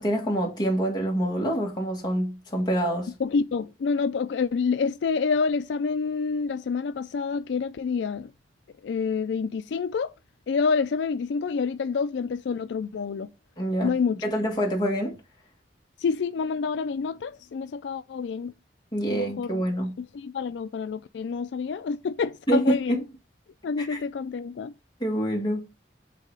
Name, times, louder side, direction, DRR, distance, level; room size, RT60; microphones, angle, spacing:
voice 1, 0.0-3.1 13.6-13.9 14.2-15.2 18.9-19.9 22.5-23.0 23.8-24.0 25.0-25.7, right 1 dB, 25° left, 1.8 m, -26 dB
voice 2, 3.2-8.3 8.8-10.1 10.5-13.3 13.8-14.2 16.0-18.5 19.1-19.6 20.0-23.0 23.6-24.7, left 5 dB, 85° left, 0.4 m, -28 dB
7.6 x 2.9 x 4.7 m
head